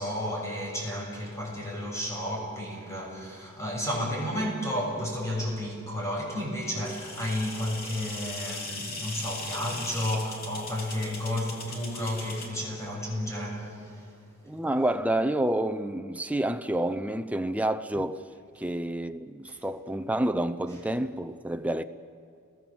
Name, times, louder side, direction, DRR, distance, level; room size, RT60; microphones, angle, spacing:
voice 1, 0.0-14.1 18.6-18.7 19.5-19.6, left 1 dB, 15° left, 7.4 m, -32 dB
sound 1, 6.8-12.5, left 2 dB, 45° left, 3.0 m, -39 dB
voice 2, 14.5-18.3 18.6-21.8, right 1 dB, 5° right, 0.6 m, -29 dB
30.0 x 21.5 x 7.2 m
head